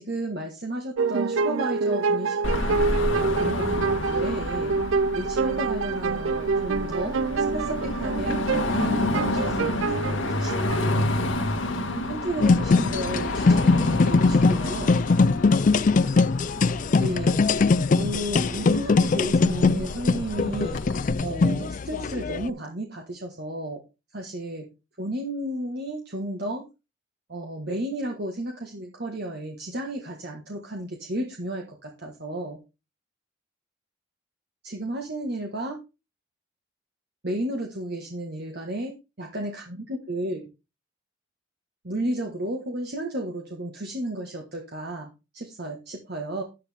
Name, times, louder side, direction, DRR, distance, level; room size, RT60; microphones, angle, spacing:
voice 1, 0.0-4.8 5.1-7.2 7.5-8.4 8.7-11.2 11.8-14.9 17.0-17.7 18.0-23.8 24.1-24.7 25.0-26.6 27.3-32.6 34.6-35.8 37.2-40.4 41.8-46.4, right 1 dB, 55° right, 1 dB, 1.6 m, -33 dB
sound 1, 1.0-11.4, right 4 dB, 85° right, 0.5 m, -27 dB
Car passing by / Traffic noise roadway noise / Engine, 2.4-21.1, left 1 dB, 75° left, 1.7 m, -30 dB
sound 2, 12.4-22.5, left 4 dB, 40° left, 0.4 m, -21 dB
10.5 x 9.4 x 3.5 m, 0.28 s
head